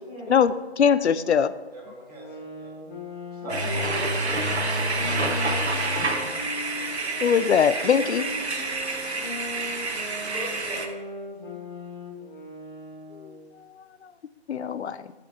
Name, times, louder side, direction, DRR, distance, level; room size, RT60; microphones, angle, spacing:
voice 1, 0.3-1.5 7.2-8.3 13.2-13.3 14.5-15.0, left 7 dB, 85° left, 14 dB, 0.5 m, -21 dB
voice 2, 1.7-2.7 3.3-3.9 10.2-10.9, right 1 dB, 35° right, -4 dB, 2.1 m, -42 dB
sound 1, 2.1-7.3 7.8-13.4, left 2 dB, 45° left, 2.3 m, -38 dB
voice 3, 3.4-4.4 5.0-6.0 8.0-8.6, equal, 5° left, -10 dB, 1.3 m, -39 dB
sound 2, 3.5-10.9, right 2 dB, 75° right, 1.1 m, -28 dB
13.0 x 5.1 x 3.0 m, 1.2 s
hypercardioid pair, 170°, 33 cm